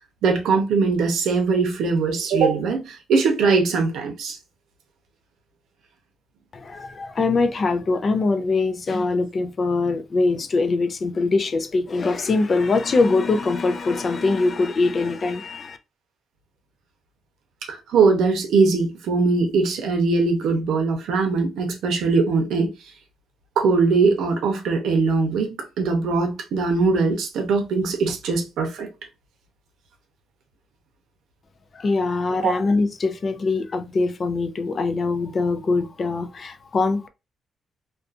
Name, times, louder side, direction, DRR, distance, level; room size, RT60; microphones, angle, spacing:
voice 1, 0.2-4.4 17.7-22.7 23.6-25.5 25.8-28.9 32.4-32.5, right 4 dB, 80° right, 0.7 m, -21 dB
voice 2, 6.5-15.8 31.7-37.1, left 3 dB, 35° left, 0.3 m, -22 dB
2.4 x 2.4 x 2.4 m
cardioid pair, 140°, 0 cm